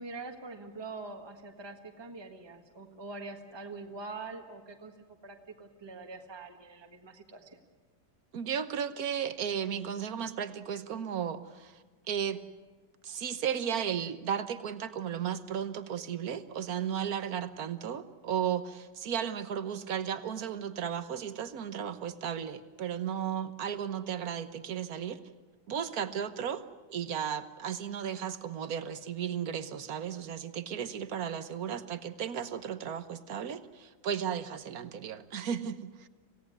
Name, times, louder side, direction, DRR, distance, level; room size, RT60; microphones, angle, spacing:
voice 1, 0.0-4.9 5.2-7.6, right 3 dB, 15° right, 3 dB, 1.5 m, -44 dB
voice 2, 8.3-12.4 13.0-25.2 25.7-26.6 26.9-36.1, right 8 dB, 55° right, 11 dB, 1.4 m, -35 dB
26.5 x 17.0 x 9.7 m, 1.3 s
omnidirectional pair, 2.2 m